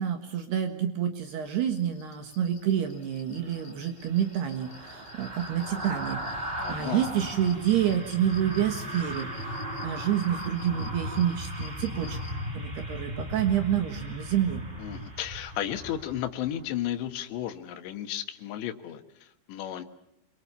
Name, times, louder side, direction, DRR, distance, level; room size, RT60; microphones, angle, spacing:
voice 1, 0.0-9.6 9.8-12.2 12.5-14.7, right 10 dB, 65° right, 6 dB, 3.4 m, -28 dB
sound 1, 1.2-12.4, left 6 dB, 50° left, 4.9 m, -52 dB
sound 2, 3.4-16.7 17.1-17.3, equal, 20° right, 1.5 m, -37 dB
voice 2, 6.6-7.0 14.8-19.8, left 11 dB, 75° left, 7 dB, 3.6 m, -34 dB
26.5 x 23.0 x 6.9 m, 0.83 s
omnidirectional pair, 5.3 m